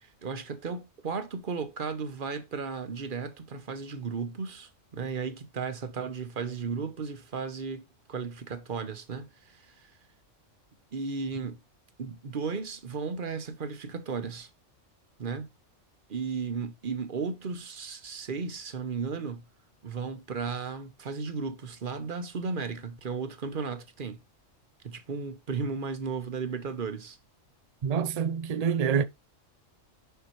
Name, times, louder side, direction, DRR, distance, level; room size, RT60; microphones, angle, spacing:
voice 1, 0.0-9.9 10.9-11.6 12.0-14.5 15.2-15.5 16.1-19.4 19.8-24.2 24.8-27.2, right 5 dB, 45° right, 1.0 m, -35 dB
voice 2, 27.8-29.0, right 7 dB, 65° right, 0.4 m, -26 dB
6.6 x 5.8 x 3.1 m
omnidirectional pair, 1.3 m